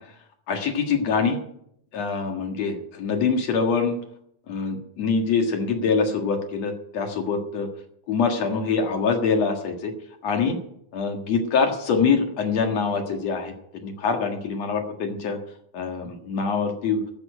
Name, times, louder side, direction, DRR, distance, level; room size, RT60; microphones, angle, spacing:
voice 1, 0.5-1.4 1.9-4.0 4.5-7.7 8.1-9.9 10.2-10.6 10.9-13.5 13.8-15.4 15.7-17.0, left 5 dB, 60° left, 4 dB, 2.7 m, -24 dB
13.0 x 7.4 x 8.9 m, 0.70 s
omnidirectional pair, 3.5 m